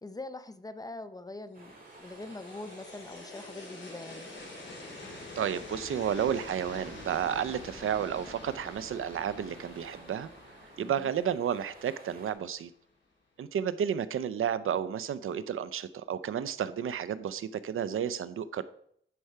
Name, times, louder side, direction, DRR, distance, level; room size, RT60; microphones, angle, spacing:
voice 1, 0.0-4.3 10.8-11.1, left 2 dB, 20° left, 12 dB, 0.5 m, -43 dB
sound 1, 1.5-12.3, right 3 dB, 45° right, 2.1 m, -53 dB
sound 2, 1.6-12.6, left 2 dB, 60° left, 3.5 m, -47 dB
voice 2, 5.4-10.3 10.8-12.7 13.4-18.6, right 8 dB, 85° right, 15 dB, 0.5 m, -32 dB
10.0 x 4.6 x 5.5 m, 0.67 s
wide cardioid pair, 145°, 21 cm